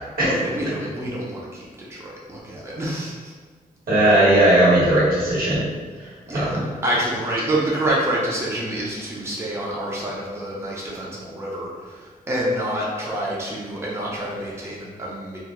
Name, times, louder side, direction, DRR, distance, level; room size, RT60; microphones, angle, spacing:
voice 1, 0.2-3.3 6.3-15.4, right 1 dB, 15° right, -5 dB, 0.5 m, -27 dB
voice 2, 3.9-5.6 6.3-6.6, right 1 dB, 75° right, -9 dB, 1.2 m, -17 dB
2.4 x 2.1 x 2.9 m, 1.5 s
cardioid pair, 80°, 15 cm